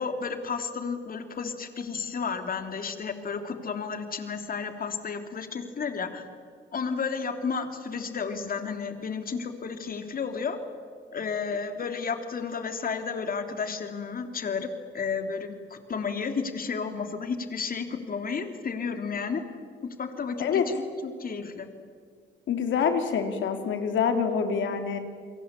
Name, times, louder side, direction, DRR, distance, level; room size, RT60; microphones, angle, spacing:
voice 1, 0.0-6.3 6.7-10.6 11.1-14.7 14.9-19.4 19.8-21.7, left 5 dB, 45° left, 6 dB, 3.3 m, -32 dB
voice 2, 22.5-25.0, left 6 dB, 75° left, 6 dB, 3.3 m, -26 dB
29.5 x 22.5 x 8.6 m, 2.1 s
cardioid pair, 90°, 20 cm